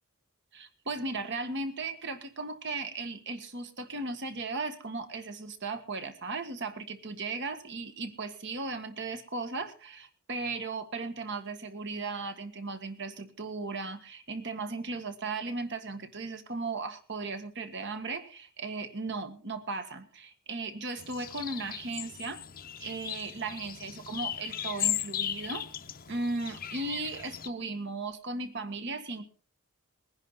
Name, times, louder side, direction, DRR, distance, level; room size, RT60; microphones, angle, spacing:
voice 1, 0.5-22.4 22.8-25.7 26.1-29.3, right 3 dB, 55° right, 9 dB, 1.6 m, -36 dB
sound 1, 21.0-27.5, left 11 dB, 45° left, 0.7 m, -37 dB
20.5 x 10.5 x 4.1 m, 0.40 s
head